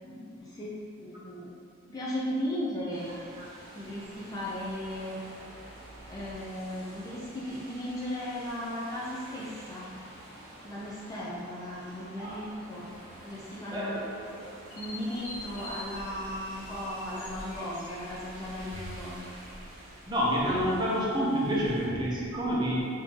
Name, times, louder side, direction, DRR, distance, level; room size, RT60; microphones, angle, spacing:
voice 1, 0.0-1.5 1.9-3.1 3.7-5.2 6.1-9.9 10.6-12.9 13.2-14.1 14.8-19.4, left 1 dB, 15° left, -7 dB, 0.3 m, -36 dB
sound 1, 2.9-21.9, right 1 dB, 85° right, 0.8 m, -48 dB
sound 2, 9.7-18.1, left 1 dB, 90° left, 1.3 m, -49 dB
voice 2, 13.7-14.5 20.1-22.8, equal, 20° right, -6 dB, 0.6 m, -29 dB
3.5 x 2.8 x 2.8 m, 2.5 s
head